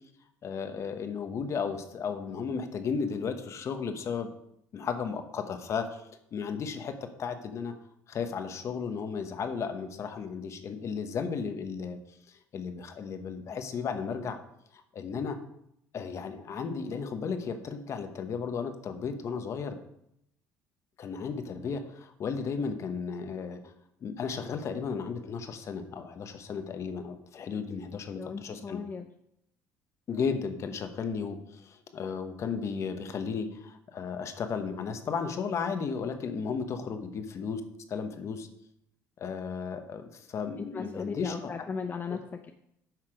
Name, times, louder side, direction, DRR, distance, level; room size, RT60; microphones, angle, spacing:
voice 1, 0.4-4.3 4.7-6.0 6.3-7.7 8.1-12.0 12.3-14.4 14.7-15.4 15.9-19.8 21.0-23.7 24.0-28.8 30.1-37.6 37.9-38.5 39.2-41.7, left 5 dB, 45° left, 8 dB, 1.1 m, -34 dB
voice 2, 28.2-29.0 40.7-42.2, left 5 dB, 30° left, 5 dB, 0.6 m, -36 dB
9.2 x 5.8 x 5.0 m, 0.77 s
cardioid pair, 105°, 7 cm